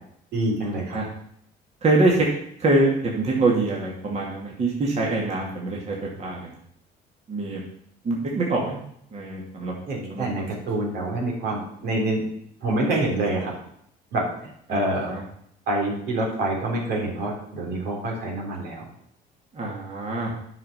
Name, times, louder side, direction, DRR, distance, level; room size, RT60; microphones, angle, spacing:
voice 1, 0.3-1.0 9.9-12.2 12.6-13.5 14.1-14.2 14.7-15.1 15.7-18.9, right 2 dB, 70° right, -2 dB, 3.4 m, -26 dB
voice 2, 1.8-2.3 2.6-6.4 7.3-7.6 8.0-8.8 9.1-9.7 10.1-10.5 14.7-15.2 19.5-20.3, right 2 dB, 40° right, -3 dB, 2.4 m, -24 dB
9.7 x 5.8 x 5.9 m, 0.70 s
cardioid pair, 110°, 17 cm